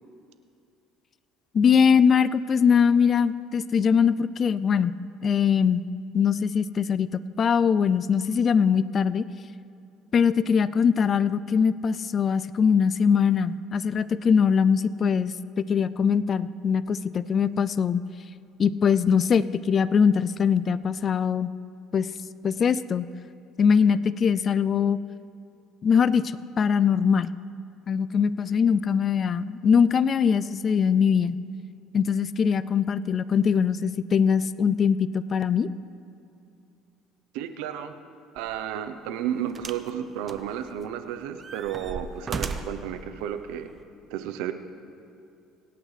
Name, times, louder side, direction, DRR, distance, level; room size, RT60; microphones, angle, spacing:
voice 1, 1.5-4.9 5.2-5.9 6.1-9.2 10.1-18.0 18.6-21.5 21.9-22.1 22.4-23.1 23.6-25.0 25.8-27.3 27.9-31.4 31.9-35.7, left 6 dB, 40° left, 16 dB, 0.3 m, -22 dB
voice 2, 37.3-37.9 38.3-43.7 44.1-44.5, right 10 dB, 85° right, 9 dB, 0.7 m, -32 dB
sound 1, 38.4-38.6 39.6-39.9 40.3-41.0 41.4-42.9 43.8-43.9, right 4 dB, 35° right, 0.8 m, -35 dB
25.0 x 8.7 x 3.3 m, 2.6 s
supercardioid pair, 100°, 0 cm